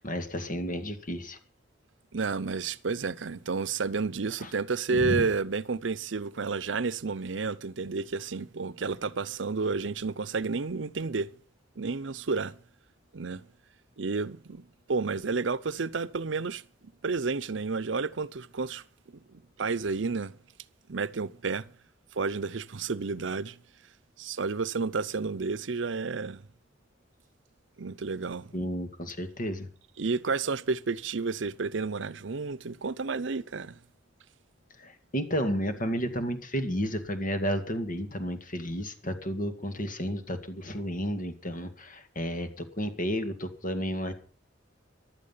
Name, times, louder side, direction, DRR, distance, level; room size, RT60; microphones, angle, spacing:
voice 1, 0.0-1.4 4.4-4.5 4.9-5.3 28.5-29.7 34.8-44.1, equal, 45° left, 2.1 m, -32 dB
voice 2, 2.1-11.3 11.8-12.6 13.1-13.4 14.0-16.6 17.0-18.8 19.3-20.4 20.9-21.7 22.1-23.6 24.2-26.4 27.8-28.5 30.0-33.8, right 4 dB, 75° right, 0.7 m, -31 dB
15.0 x 11.5 x 5.7 m
head